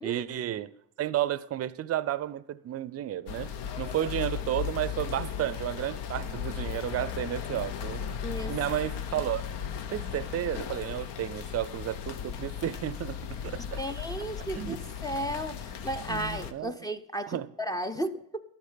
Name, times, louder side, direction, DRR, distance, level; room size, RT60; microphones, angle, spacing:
voice 1, 0.0-0.7 1.0-3.5 3.8-8.0 8.5-9.4 9.9-13.8 14.5-14.9 16.1-16.8 17.3-17.5, right 12 dB, 35° right, 0.5 m, -32 dB
sound 1, 3.3-16.5, left 8 dB, 65° left, 1.0 m, -36 dB
voice 2, 8.2-8.5 13.6-14.8 15.0-18.4, right 1 dB, 10° left, 0.5 m, -34 dB
12.5 x 8.3 x 5.6 m
supercardioid pair, 100°, 43 cm